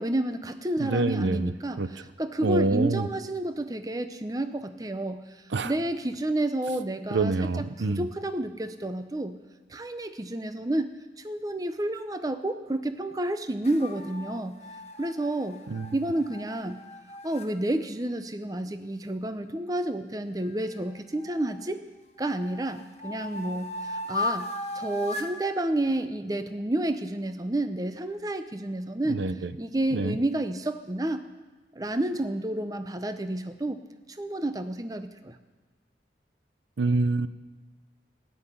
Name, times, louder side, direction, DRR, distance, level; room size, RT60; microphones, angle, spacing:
voice 1, 0.0-7.5 7.8-9.4 9.7-14.6 15.0-15.6 15.9-16.8 17.2-21.8 22.2-29.2 29.6-31.2 31.7-33.8 34.1-35.4, right 1 dB, 20° right, 9 dB, 0.6 m, -30 dB
voice 2, 0.8-1.9 2.4-3.1 5.5-5.7 7.1-8.0 15.7-15.9 29.1-29.5 29.9-30.2 36.8-37.3, right 3 dB, 85° right, 14 dB, 0.6 m, -26 dB
sound 1, 13.6-17.5 20.4-21.7 22.2-25.4, left 2 dB, 35° left, 1.2 m, -37 dB
14.0 x 8.1 x 9.9 m, 1.3 s
head